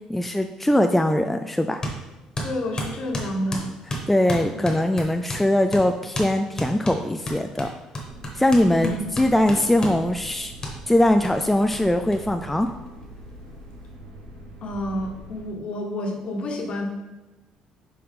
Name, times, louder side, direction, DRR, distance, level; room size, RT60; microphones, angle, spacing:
voice 1, 0.1-1.8 4.1-7.7 8.3-10.5 10.9-12.7, left 1 dB, 5° left, 6 dB, 0.3 m, -21 dB
sound 1, 1.8-2.0 2.4-5.5 5.7-5.9 6.1-6.3 6.6-10.0 10.6-10.8 11.2-11.3 11.7-11.8 12.1-12.2 12.4-13.2, equal, 30° left, 1.5 m, -31 dB
voice 2, 2.4-3.7 4.5-4.7 8.7-9.0 14.6-16.9, left 1 dB, 50° left, 2 dB, 1.3 m, -29 dB
sound 2, 8.0-15.5, right 1 dB, 85° right, 1.3 m, -43 dB
6.5 x 4.1 x 3.6 m, 1.1 s
cardioid pair, 90°, 2 cm